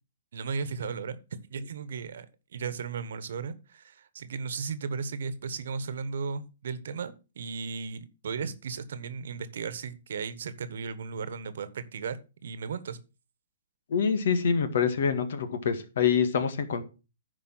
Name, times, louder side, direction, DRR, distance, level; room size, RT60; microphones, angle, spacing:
voice 1, 0.3-1.2 1.5-2.3 2.5-13.0, right 5 dB, 70° right, 14 dB, 1.2 m, -35 dB
voice 2, 13.9-16.8, left 6 dB, 65° left, 10 dB, 1.8 m, -26 dB
10.5 x 4.9 x 6.1 m, 0.31 s
hypercardioid pair, 140°, 0 cm